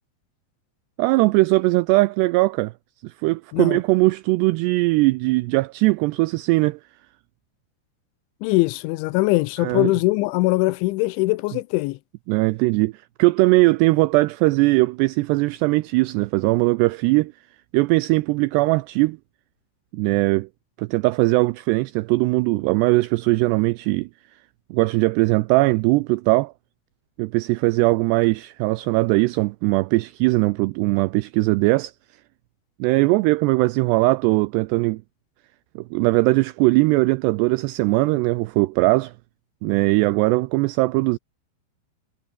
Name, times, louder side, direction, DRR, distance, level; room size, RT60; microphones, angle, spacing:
voice 1, 1.0-2.7 3.0-6.8 9.6-9.9 12.3-12.9 13.2-17.3 17.7-19.2 19.9-20.5 20.8-24.1 24.7-26.5 27.2-31.9 32.8-35.0 35.8-39.1 39.6-41.2, right 22 dB, 85° right, 2.4 m, -20 dB
voice 2, 8.4-12.0, left 21 dB, 90° left, 3.1 m, -21 dB
omnidirectional pair, 5.3 m